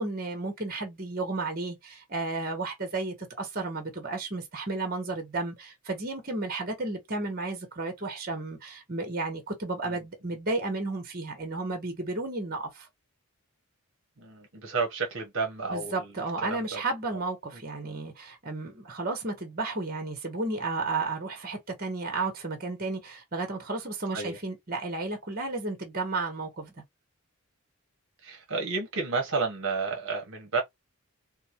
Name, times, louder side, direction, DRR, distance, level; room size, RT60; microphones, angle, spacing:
voice 1, 0.0-12.9 15.7-26.7, right 3 dB, 40° right, 1.3 m, -33 dB
voice 2, 14.2-16.1 16.4-16.8 24.1-24.4 28.2-30.6, right 4 dB, 60° right, 1.2 m, -31 dB
4.3 x 2.2 x 3.0 m
head